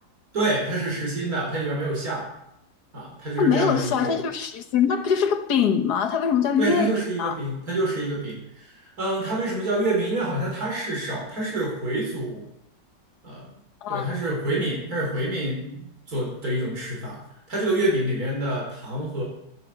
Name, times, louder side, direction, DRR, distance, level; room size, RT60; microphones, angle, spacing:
voice 1, 0.3-2.3 2.9-4.2 6.6-12.4 13.2-13.5 13.9-17.2 17.5-19.2, right 1 dB, 55° right, 5.0 m, -27 dB
voice 2, 3.4-6.9 7.2-7.4 13.8-14.1, left 7 dB, 65° left, 1.7 m, -23 dB
11.0 x 11.0 x 7.7 m
omnidirectional pair, 1.9 m